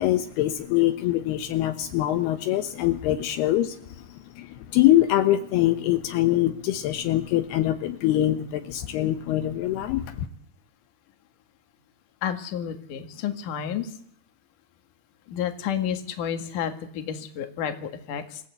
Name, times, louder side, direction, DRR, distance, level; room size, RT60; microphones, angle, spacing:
voice 1, 0.0-10.3, left 14 dB, 80° left, 7 dB, 3.0 m, -24 dB
voice 2, 12.2-13.9 15.3-18.4, left 8 dB, 60° left, 7 dB, 3.1 m, -30 dB
28.0 x 16.0 x 8.1 m, 0.65 s
omnidirectional pair, 4.6 m